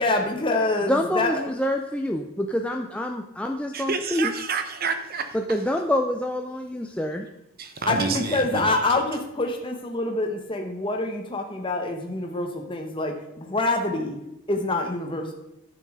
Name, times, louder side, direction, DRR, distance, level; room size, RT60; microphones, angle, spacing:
voice 1, 0.0-1.4 7.9-14.2 14.5-15.3, left 2 dB, 25° left, 1.0 m, -26 dB
voice 2, 0.9-4.3 5.3-7.3, left 1 dB, 5° left, 0.4 m, -26 dB
voice 3, 3.7-5.4 7.6-8.8, right 4 dB, 45° right, 1.0 m, -29 dB
10.5 x 6.9 x 4.8 m
head